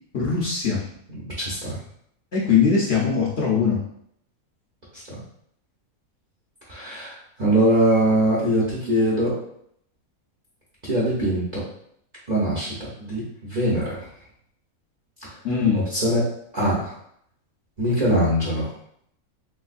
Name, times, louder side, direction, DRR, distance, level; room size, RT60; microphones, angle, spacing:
voice 1, 0.1-0.8 2.3-3.8 15.4-15.8, left 6 dB, 50° left, -5 dB, 0.9 m, -21 dB
voice 2, 1.2-1.8 6.7-9.3 10.8-11.6 12.3-14.0 15.7-16.2 16.5-16.9 17.8-18.7, right 1 dB, 35° right, -7 dB, 0.8 m, -22 dB
3.3 x 3.1 x 2.5 m, 0.69 s
omnidirectional pair, 1.5 m